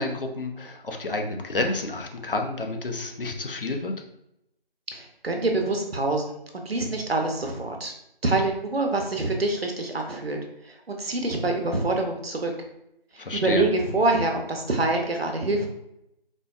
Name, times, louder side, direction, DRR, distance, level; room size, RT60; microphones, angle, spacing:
voice 1, 0.0-3.9 13.2-13.7, left 2 dB, 60° left, 3 dB, 0.6 m, -29 dB
voice 2, 4.9-7.9 8.2-10.4 10.6-12.5 13.1-15.7, right 2 dB, 80° right, 3 dB, 0.8 m, -26 dB
4.2 x 2.2 x 2.4 m, 0.82 s
figure-of-eight pair, 170°, 30 cm